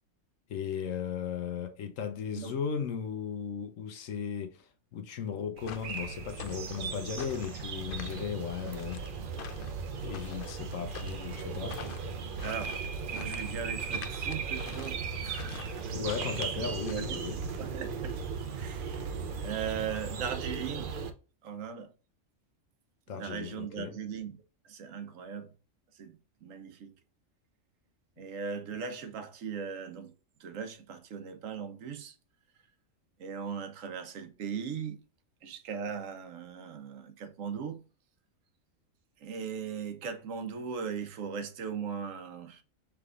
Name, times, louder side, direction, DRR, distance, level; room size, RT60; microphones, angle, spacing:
voice 1, 0.5-9.1 10.0-11.8 15.9-17.4 23.1-23.9, left 7 dB, 80° left, 1.1 m, -36 dB
sound 1, 5.6-17.6, left 8 dB, 60° left, 0.6 m, -47 dB
sound 2, 5.6-21.1, right 5 dB, 55° right, 0.6 m, -37 dB
voice 2, 12.4-12.8 13.1-16.0 16.5-17.2 17.6-18.2 18.5-19.1 19.4-20.9 21.4-21.9 23.1-24.3 24.6-25.5 25.9-26.9 28.2-30.1 30.4-32.1 33.2-35.0 35.4-37.8 39.2-42.6, right 7 dB, 85° right, 1.1 m, -39 dB
5.8 x 3.4 x 2.4 m
omnidirectional pair, 1.3 m